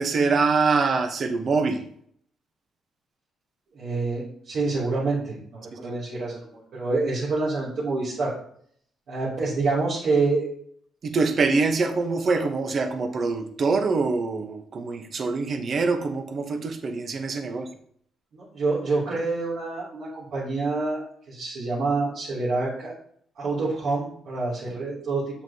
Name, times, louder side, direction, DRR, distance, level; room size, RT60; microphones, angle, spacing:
voice 1, 0.0-1.8 5.7-5.9 11.0-17.7, right 4 dB, 50° right, 7 dB, 1.0 m, -24 dB
voice 2, 3.7-8.3 9.1-10.5 18.3-21.0 21.3-22.9 23.4-25.4, right 3 dB, 65° right, -10 dB, 2.7 m, -27 dB
7.6 x 5.8 x 2.8 m, 0.63 s
cardioid pair, 90°, 0 cm